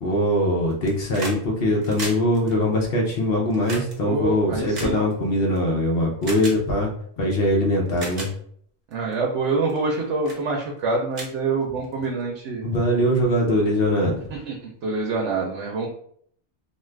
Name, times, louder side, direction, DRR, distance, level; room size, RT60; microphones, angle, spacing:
voice 1, 0.0-6.9 7.2-8.3 12.6-14.1, left 1 dB, 60° left, -1 dB, 0.8 m, -22 dB
sound 1, 0.7-1.4 1.7-5.6 6.2-6.6 7.4-7.5 7.9-8.3 8.9-9.1 9.7-9.9 10.2-10.4 10.8-10.9 11.1-12.1 13.2-13.3, right 2 dB, 40° right, 0.9 m, -36 dB
voice 2, 4.0-5.0 8.9-12.7 14.3-15.9, right 3 dB, 85° right, -1 dB, 0.9 m, -26 dB
2.5 x 2.4 x 3.2 m, 0.63 s
omnidirectional pair, 1.2 m